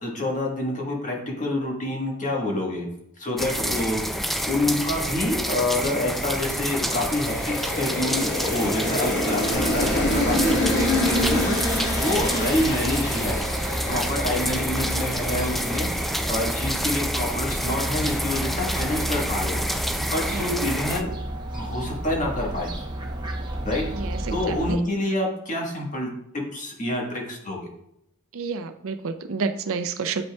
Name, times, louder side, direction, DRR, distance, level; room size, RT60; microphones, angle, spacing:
voice 1, 0.0-2.9 3.2-13.4 13.9-21.1 21.5-22.7 23.6-23.8 24.3-27.7, left 1 dB, 35° left, -1 dB, 1.4 m, -27 dB
sound 1, 3.4-21.0, equal, ahead, 0.3 m, -28 dB
sound 2, 6.3-16.7, left 1 dB, 55° left, 1.7 m, -28 dB
Fowl, 9.5-24.7, right 1 dB, 20° right, 0.8 m, -32 dB
voice 2, 20.3-20.6 23.9-24.8 28.3-30.2, right 4 dB, 65° right, 8 dB, 0.5 m, -30 dB
8.4 x 5.3 x 2.3 m, 0.78 s
head